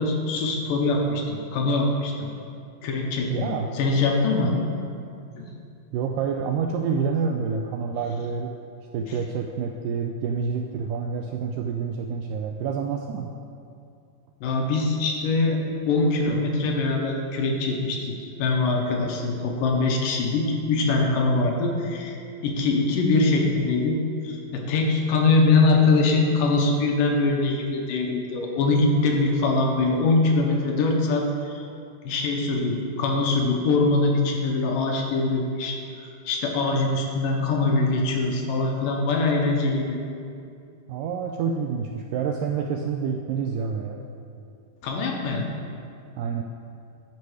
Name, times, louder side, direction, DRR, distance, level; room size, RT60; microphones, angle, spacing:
voice 1, 0.0-2.3 2.8-4.5 5.4-5.5 14.4-22.2 22.4-31.6 32.0-35.8 36.3-40.0 44.8-45.5, left 3 dB, 75° left, 1 dB, 2.3 m, -23 dB
voice 2, 3.3-3.7 5.9-8.5 8.9-13.3 40.9-44.0 46.2-46.4, right 6 dB, 85° right, 3 dB, 1.9 m, -28 dB
9.9 x 6.7 x 4.7 m, 2.5 s
omnidirectional pair, 4.2 m